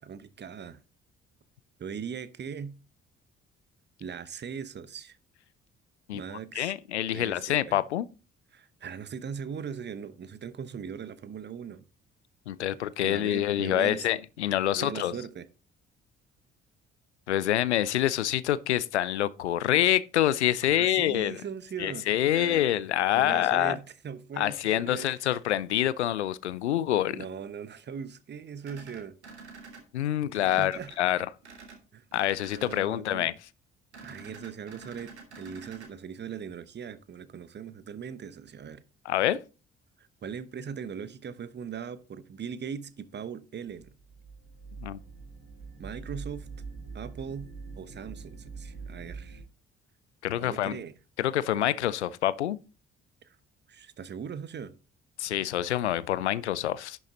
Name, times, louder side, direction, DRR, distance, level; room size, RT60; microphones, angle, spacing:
voice 1, 0.0-0.8 1.8-2.8 4.0-5.2 6.1-6.7 7.1-7.8 8.5-11.9 13.0-14.1 14.7-15.5 20.6-22.6 23.1-25.2 27.1-29.2 30.5-30.9 31.9-32.1 32.5-33.3 34.0-38.8 40.0-43.9 45.8-46.5 46.9-49.4 50.4-50.9 53.2-53.4 53.7-54.7, right 7 dB, 30° right, 0.9 m, -40 dB
voice 2, 6.6-8.1 12.5-15.2 17.3-21.4 21.8-23.8 24.4-27.2 29.9-31.3 32.1-33.3 39.1-39.4 44.8-45.0 50.2-50.8 51.2-52.6 55.2-57.0, left 12 dB, 80° left, 0.5 m, -26 dB
sound 1, 28.6-29.8 30.3-31.0 31.4-31.8 32.1-32.8 33.9-35.9, right 4 dB, 85° right, 1.5 m, -47 dB
sound 2, 43.8-49.4, right 4 dB, 70° right, 2.9 m, -43 dB
10.5 x 6.4 x 3.9 m
figure-of-eight pair, 45°, 33 cm